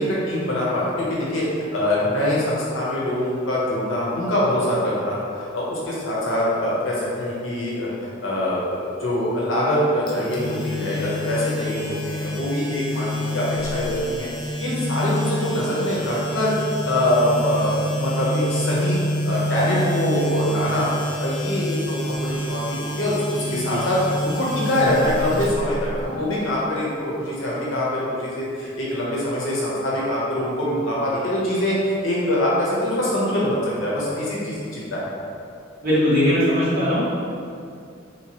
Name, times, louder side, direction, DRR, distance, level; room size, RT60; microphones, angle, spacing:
voice 1, 0.0-1.4 1.7-16.5 16.8-19.0 19.2-20.9 21.2-35.1, left 1 dB, 85° left, -6 dB, 0.9 m, -24 dB
sound 1, 10.1-26.0, equal, 25° left, 0.5 m, -28 dB
voice 2, 35.8-37.0, equal, 50° right, -10 dB, 1.3 m, -20 dB
3.3 x 3.0 x 2.9 m, 2.4 s
head